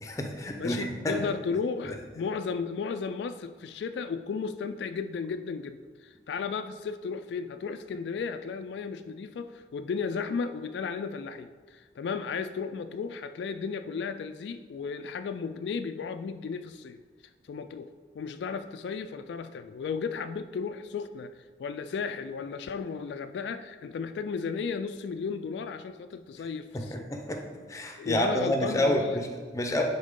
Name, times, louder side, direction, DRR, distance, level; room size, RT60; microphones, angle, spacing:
voice 1, 0.0-1.2 26.7-27.4 27.7-29.8, left 1 dB, 20° left, 3 dB, 0.7 m, -29 dB
voice 2, 0.6-17.0 17.5-17.9 18.1-21.3 21.6-27.0 28.0-29.2, left 5 dB, 75° left, 9 dB, 0.3 m, -34 dB
10.0 x 4.3 x 3.7 m, 1.5 s
head